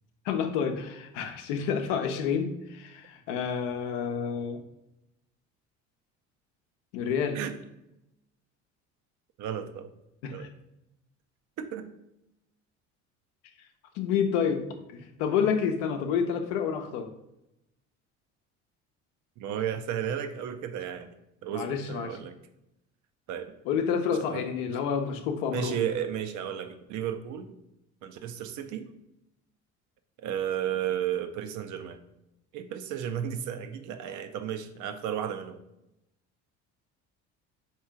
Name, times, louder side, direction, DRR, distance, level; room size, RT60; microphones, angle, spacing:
voice 1, 0.2-4.6 6.9-7.4 10.2-10.5 13.9-14.6 14.9-17.1 21.5-22.2 23.6-25.8, left 7 dB, 80° left, 5 dB, 0.7 m, -29 dB
voice 2, 9.4-9.9 10.3-10.5 11.6-11.9 19.4-21.1 21.4-22.3 23.3-23.5 24.3-24.4 24.7-24.8 25.5-27.6 28.0-28.9 30.2-32.0 32.5-35.6, right 9 dB, 60° right, 8 dB, 0.6 m, -33 dB
3.6 x 3.0 x 4.4 m, 0.87 s
supercardioid pair, 75°, 34 cm